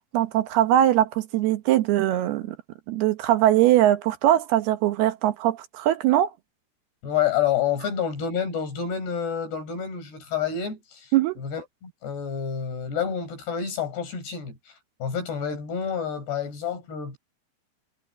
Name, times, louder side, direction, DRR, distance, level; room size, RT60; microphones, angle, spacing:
voice 1, 0.1-2.6 2.9-6.3 11.1-11.4, right 13 dB, 75° right, 2.5 m, -21 dB
voice 2, 7.0-17.2, left 8 dB, 55° left, 7.2 m, -29 dB
omnidirectional pair, 5.7 m